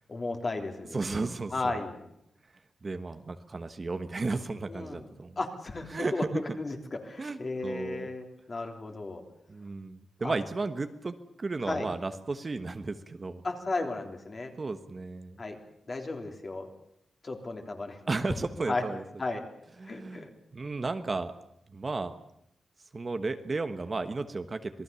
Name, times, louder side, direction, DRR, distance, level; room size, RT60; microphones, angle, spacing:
voice 1, 0.1-1.0 1.5-2.0 4.7-5.1 5.4-6.2 6.6-6.8 7.0-9.2 10.2-10.3 11.6-11.9 13.4-14.5 15.4-15.6 15.9-16.7 17.2-18.0 18.4-18.8 19.2-19.4 19.8-20.3, left 3 dB, 35° left, 3 dB, 3.4 m, -34 dB
voice 2, 0.9-1.5 2.8-5.4 5.9-6.4 7.2-8.1 9.5-13.4 14.6-15.4 18.1-19.0 19.8-20.3 20.5-21.3 21.7-22.1 22.9-24.8, right 3 dB, 35° right, 8 dB, 1.3 m, -34 dB
27.0 x 19.0 x 7.0 m, 0.78 s
wide cardioid pair, 125°, 0 cm